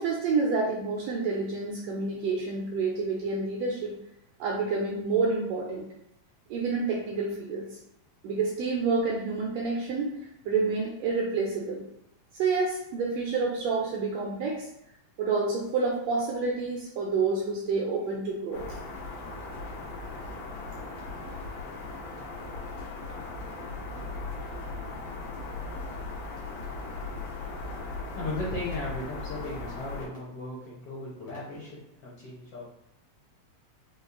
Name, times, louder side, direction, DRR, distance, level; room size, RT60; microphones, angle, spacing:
voice 1, 0.0-3.9 4.4-5.8 6.5-7.6 8.2-10.1 10.4-11.8 12.4-14.7 15.2-18.8, right 4 dB, 80° right, -2 dB, 1.5 m, -28 dB
sound 1, 18.5-30.1, left 3 dB, 85° left, 2.3 m, -38 dB
voice 2, 28.1-32.7, left 2 dB, 70° left, -5 dB, 1.5 m, -36 dB
5.2 x 2.4 x 2.4 m, 0.80 s
omnidirectional pair, 3.4 m